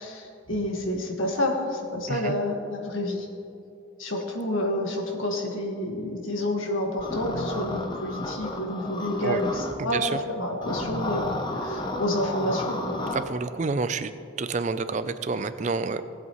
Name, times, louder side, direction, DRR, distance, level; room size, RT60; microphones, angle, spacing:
voice 1, 0.0-3.3 4.0-12.8, left 1 dB, 80° left, 2 dB, 1.5 m, -29 dB
sound 1, 7.0-9.7 10.6-13.2, left 1 dB, 20° left, 0.7 m, -32 dB
voice 2, 9.8-10.2 13.1-14.1 14.4-16.0, right 4 dB, 35° right, 12 dB, 0.4 m, -28 dB
19.0 x 8.1 x 3.1 m, 2.6 s
head